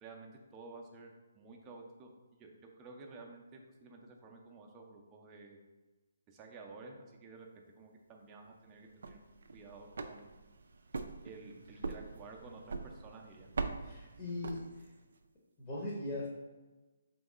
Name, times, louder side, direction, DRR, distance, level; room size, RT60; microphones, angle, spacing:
voice 1, 0.0-2.1 2.4-5.6 6.3-9.2 9.5-10.3 11.2-13.5, right 3 dB, 20° right, 0 dB, 0.6 m, -52 dB
sound 1, 8.8-15.1, right 4 dB, 65° right, 0.3 m, -43 dB
voice 2, 13.8-14.6 15.6-16.3, left 2 dB, 25° left, -5 dB, 0.9 m, -39 dB
3.5 x 3.1 x 3.6 m, 1.2 s
figure-of-eight pair, 145°, 0 cm